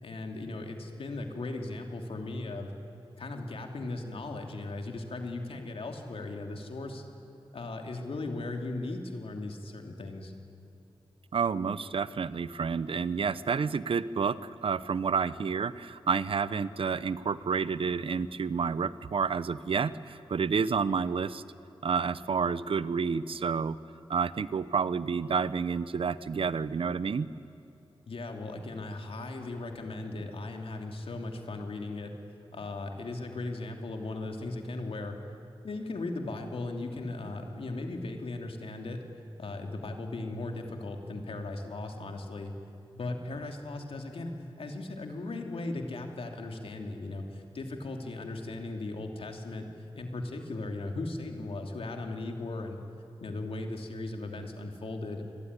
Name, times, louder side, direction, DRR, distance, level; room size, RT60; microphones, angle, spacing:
voice 1, 0.0-2.7 3.2-7.0 7.5-10.3 28.1-32.1 32.5-35.2 35.6-39.0 39.4-42.5 43.0-49.7 49.9-52.8 53.2-55.3, left 2 dB, 85° left, 3 dB, 2.9 m, -37 dB
voice 2, 11.3-21.4 21.8-23.8 24.1-27.3, right 5 dB, 75° right, 16 dB, 0.8 m, -29 dB
27.5 x 22.0 x 9.8 m, 2.8 s
wide cardioid pair, 90°, 9 cm